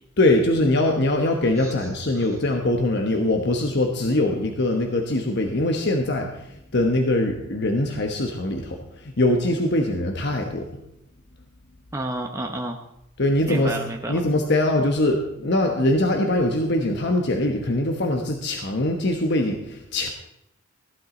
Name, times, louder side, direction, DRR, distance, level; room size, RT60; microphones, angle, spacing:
voice 1, 0.2-10.7 13.2-13.8 14.1-20.1, left 1 dB, 55° left, 3 dB, 1.2 m, -22 dB
voice 2, 11.9-12.8 13.5-14.2, right 1 dB, 15° right, 2 dB, 0.9 m, -31 dB
15.5 x 11.5 x 3.9 m, 0.83 s
head